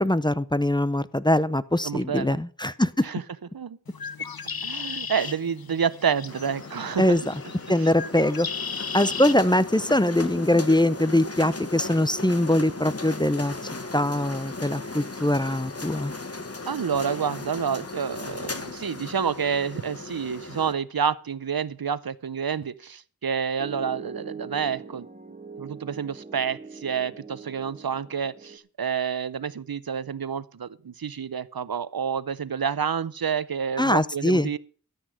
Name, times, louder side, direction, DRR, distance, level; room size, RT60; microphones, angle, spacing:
voice 1, 0.0-3.1 7.0-7.3 7.7-8.5 8.9-13.5 13.9-16.1 33.8-34.5, left 1 dB, 10° left, 0.6 m, -22 dB
voice 2, 1.8-2.4 3.0-3.2 3.5-3.8 4.6-7.2 7.8-7.9 16.7-25.1 25.6-34.6, right 7 dB, 80° right, 0.7 m, -29 dB
Bird, 3.9-9.4, left 6 dB, 75° left, 0.9 m, -36 dB
sound 1, 6.3-20.7, left 3 dB, 40° left, 1.3 m, -37 dB
Piano, 23.6-28.6, right 4 dB, 20° right, 1.6 m, -42 dB
13.5 x 8.2 x 6.3 m
wide cardioid pair, 40°, 36 cm